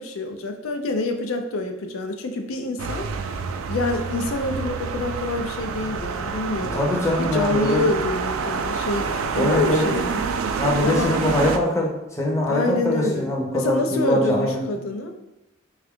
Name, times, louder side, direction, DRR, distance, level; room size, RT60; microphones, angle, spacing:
voice 1, 0.0-3.1 3.7-10.2 10.8-11.1 12.5-15.1, left 2 dB, 90° left, 5 dB, 0.4 m, -26 dB
sound 1, 2.8-11.6, right 5 dB, 90° right, 0.3 m, -27 dB
voice 2, 6.7-7.8 9.3-9.9 10.6-14.6, left 1 dB, 15° left, -2 dB, 0.6 m, -23 dB
3.6 x 2.3 x 3.5 m, 0.93 s
head